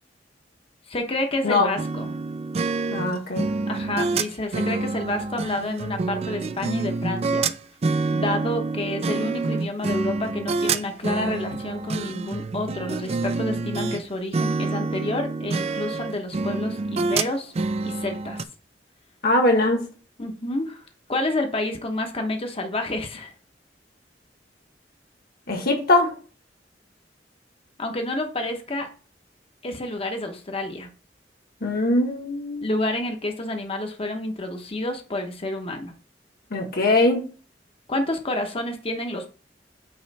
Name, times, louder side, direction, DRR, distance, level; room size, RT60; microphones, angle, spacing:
voice 1, 0.9-2.1 3.7-7.5 8.1-17.5 17.8-18.4 20.2-20.8 21.1-23.3 27.8-28.9 29.6-30.9 32.6-35.9 37.9-39.3, left 1 dB, 35° left, 4 dB, 1.0 m, -29 dB
sound 1, 1.8-14.0 14.3-18.4, right 3 dB, 35° right, 0.4 m, -27 dB
voice 2, 2.9-3.5 19.2-19.8 25.5-26.1 31.6-32.7 36.5-37.2, left 2 dB, 60° left, 2 dB, 1.6 m, -21 dB
8.6 x 3.2 x 4.1 m, 0.38 s
head